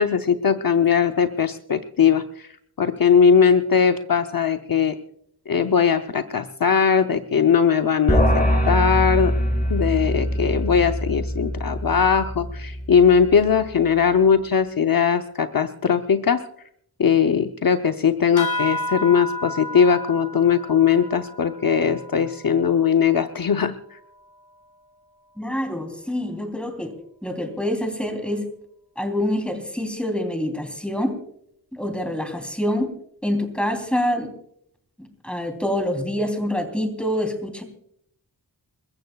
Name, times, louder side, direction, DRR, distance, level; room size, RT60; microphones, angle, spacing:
voice 1, 0.0-2.5 2.8-5.0 5.5-9.3 9.7-16.4 17.0-23.8, left 7 dB, 60° left, 7 dB, 0.7 m, -19 dB
sound 1, 8.1-13.6, equal, 20° left, 6.3 m, -23 dB
sound 2, 18.4-23.3, left 1 dB, 75° left, 2.2 m, -32 dB
voice 2, 25.4-26.9 27.2-28.4 29.0-31.2 31.7-32.9 33.2-34.3 35.2-37.6, left 1 dB, 5° left, 5 dB, 3.1 m, -26 dB
28.0 x 14.5 x 2.3 m, 0.69 s
wide cardioid pair, 65°, 39 cm